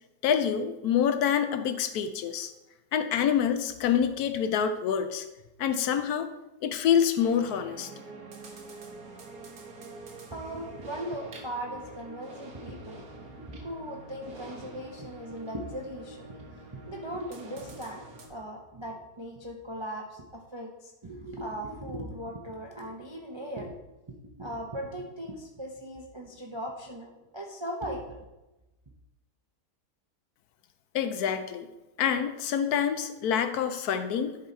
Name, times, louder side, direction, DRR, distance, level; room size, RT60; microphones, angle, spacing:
voice 1, 0.2-2.5 2.9-5.3 5.6-6.3 6.6-7.9 30.9-31.7 32.0-34.4, left 8 dB, 75° left, 9 dB, 1.1 m, -26 dB
sound 1, 7.2-18.3, right 2 dB, 70° right, 1.8 m, -46 dB
voice 2, 10.3-23.8 24.3-28.2, right 1 dB, 40° right, 0 dB, 0.4 m, -39 dB
10.5 x 4.1 x 4.2 m, 1.0 s
omnidirectional pair, 1.7 m